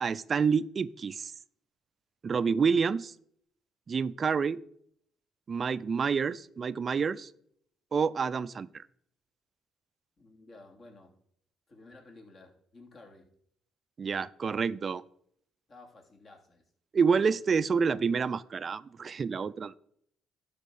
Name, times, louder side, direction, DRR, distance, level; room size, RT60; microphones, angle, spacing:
voice 1, 0.0-1.3 2.2-3.1 3.9-4.6 5.5-7.3 7.9-8.8 14.0-15.0 16.9-19.7, right 5 dB, 45° right, 16 dB, 0.4 m, -28 dB
voice 2, 10.2-11.1 11.7-13.3 15.7-16.6, left 2 dB, 45° left, 1 dB, 2.8 m, -53 dB
11.5 x 4.3 x 6.5 m, 0.67 s
supercardioid pair, 70°, 0 cm